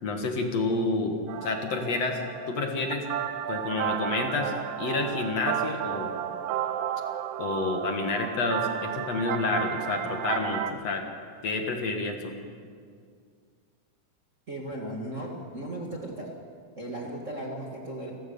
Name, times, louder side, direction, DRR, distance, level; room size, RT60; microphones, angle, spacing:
voice 1, 0.0-2.2 2.5-3.1 3.5-4.5 4.8-6.2 7.4-11.1 11.4-12.4, left 3 dB, 60° left, 4 dB, 2.6 m, -29 dB
sound 1, 1.3-10.7, right 10 dB, 75° right, 2.0 m, -33 dB
voice 2, 14.5-16.4 16.8-18.1, right 1 dB, 30° right, -1 dB, 1.7 m, -36 dB
30.0 x 13.5 x 6.9 m, 2.1 s
omnidirectional pair, 3.6 m